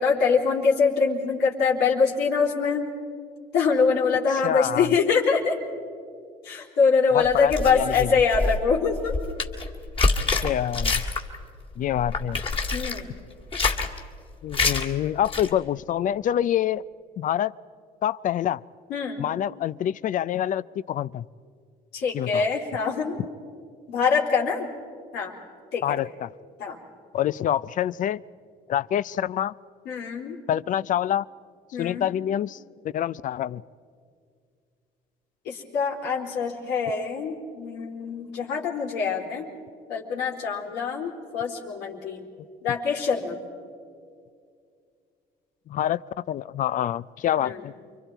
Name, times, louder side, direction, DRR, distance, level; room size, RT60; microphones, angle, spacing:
voice 1, 0.0-2.9 3.5-5.6 6.4-9.1 12.7-13.1 18.9-19.3 21.9-23.2 23.9-24.7 25.1-25.4 25.7-26.0 26.6-26.8 29.9-30.4 31.7-32.1 35.5-39.5 39.9-42.3 42.6-43.4 47.4-47.6, left 5 dB, 85° left, -2 dB, 3.9 m, -24 dB
voice 2, 4.4-4.9 7.1-8.1 10.4-11.0 11.8-12.4 14.4-16.8 17.2-17.5 18.0-18.6 19.2-21.3 22.1-22.4 25.8-26.3 27.1-28.2 28.7-29.5 30.5-31.3 31.8-32.6 32.9-33.6 45.7-46.0 46.3-47.7, left 11 dB, 50° left, 18 dB, 0.5 m, -26 dB
sound 1, 7.3-11.4 11.7-13.0 13.4-14.0 14.5-14.9 15.2-15.5, left 3 dB, 30° left, 2.1 m, -26 dB
29.0 x 24.0 x 4.6 m, 2.2 s
cardioid pair, 110°, 17 cm